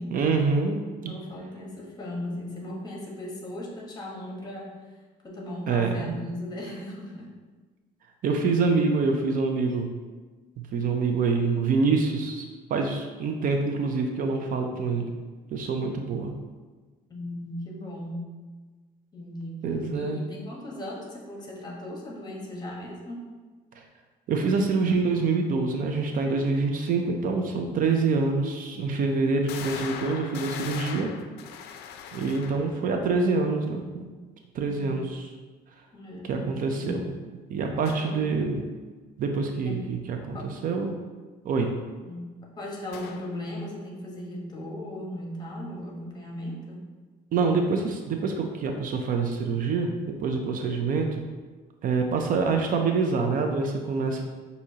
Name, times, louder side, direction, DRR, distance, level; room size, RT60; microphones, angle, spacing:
voice 1, 0.1-1.1 5.7-6.2 8.2-9.9 10.7-12.4 12.7-15.1 15.5-16.3 19.6-20.2 24.3-31.1 32.1-34.0 34.5-35.3 36.2-37.1 37.5-38.6 39.2-40.4 40.6-40.9 41.4-41.7 47.3-51.2 51.8-54.2, right 4 dB, 55° right, 4 dB, 0.5 m, -26 dB
voice 2, 0.9-5.0 5.2-7.3 17.1-18.2 19.1-19.6 19.9-23.2 35.9-37.0 38.0-38.2 39.5-39.8 40.3-40.5 42.0-42.3 42.6-46.8, left 1 dB, 25° left, -2 dB, 1.1 m, -37 dB
sound 1, 28.6-28.7 29.5-32.9 37.8-38.3 42.9-43.4, left 7 dB, 75° left, 0.4 m, -39 dB
6.0 x 2.7 x 2.8 m, 1.3 s
cardioid pair, 110°, 17 cm